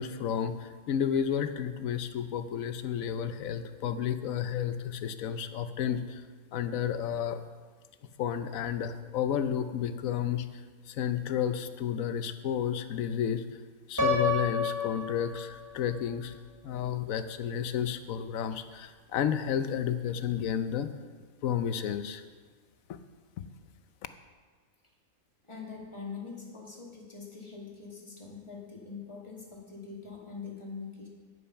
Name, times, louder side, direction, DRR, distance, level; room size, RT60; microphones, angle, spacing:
voice 1, 0.0-6.2 6.5-7.4 8.2-10.5 10.9-13.4 13.9-16.4 16.6-20.9 21.4-22.2, left 9 dB, 80° left, 10 dB, 1.1 m, -31 dB
Piano, 14.0-15.9, left 3 dB, 15° right, 0.9 m, -30 dB
voice 2, 25.4-31.1, left 5 dB, 20° left, -2 dB, 2.0 m, -43 dB
9.4 x 8.6 x 5.7 m, 1.5 s
omnidirectional pair, 1.4 m